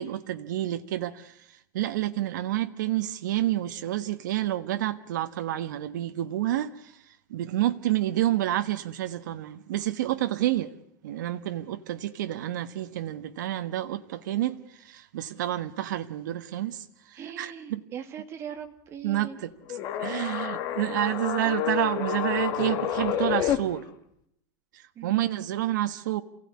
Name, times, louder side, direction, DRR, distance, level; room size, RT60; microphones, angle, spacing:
voice 1, 0.0-10.7 11.0-17.8 19.0-23.9 24.7-26.2, right 13 dB, 85° right, 8 dB, 1.5 m, -29 dB
voice 2, 17.2-19.4 25.0-25.3, right 8 dB, 25° right, 6 dB, 2.5 m, -40 dB
sound 1, 19.7-23.6, left 10 dB, 40° left, 2.4 m, -29 dB
28.5 x 17.0 x 9.7 m, 0.74 s
supercardioid pair, 160°, 10 cm